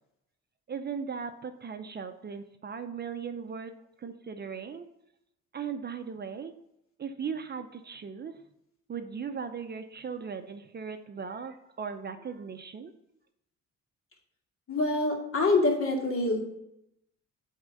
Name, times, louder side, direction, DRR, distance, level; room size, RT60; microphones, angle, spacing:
voice 1, 0.7-4.9 5.5-6.5 7.0-8.4 8.9-12.9, right 6 dB, 35° right, 7 dB, 0.6 m, -38 dB
voice 2, 14.7-16.4, left 2 dB, 45° left, -1 dB, 2.4 m, -25 dB
8.3 x 3.7 x 5.4 m, 0.82 s
cardioid pair, 90°, 30 cm